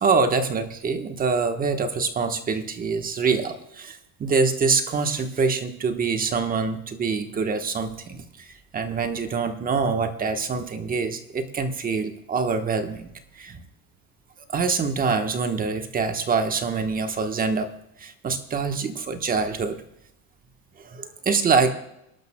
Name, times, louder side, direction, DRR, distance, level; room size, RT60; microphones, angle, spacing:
voice 1, 0.0-8.5 8.7-13.1 13.4-13.6 14.5-17.7 18.0-19.8 20.8-21.7, right 4 dB, 30° right, 7 dB, 1.1 m, -25 dB
26.5 x 12.0 x 2.2 m, 0.80 s
cardioid pair, 125°, 30 cm